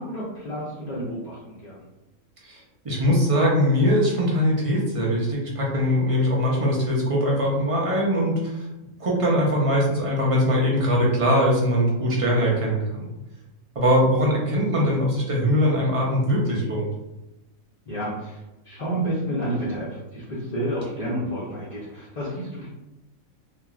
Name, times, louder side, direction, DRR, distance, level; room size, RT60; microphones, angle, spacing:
voice 1, 0.0-1.8 17.9-22.7, right 1 dB, 40° left, -8 dB, 0.6 m, -30 dB
voice 2, 2.8-8.7 9.0-13.0 13.8-16.9, equal, 50° right, -4 dB, 0.4 m, -21 dB
3.0 x 2.5 x 2.3 m, 0.96 s
omnidirectional pair, 1.4 m